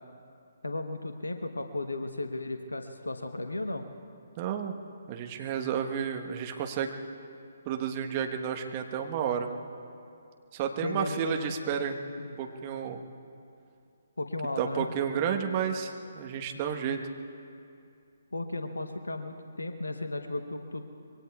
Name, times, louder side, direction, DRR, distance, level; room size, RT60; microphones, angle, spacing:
voice 1, 0.6-3.8 10.8-11.5 12.2-12.4 14.2-14.9 18.3-20.8, left 2 dB, 75° left, 6 dB, 1.0 m, -35 dB
voice 2, 4.4-4.7 5.1-7.0 7.6-9.5 10.5-12.0 12.4-13.0 14.6-17.0, right 8 dB, 30° right, 4 dB, 1.2 m, -31 dB
26.5 x 23.0 x 2.4 m, 2.5 s
figure-of-eight pair, 135°, 0 cm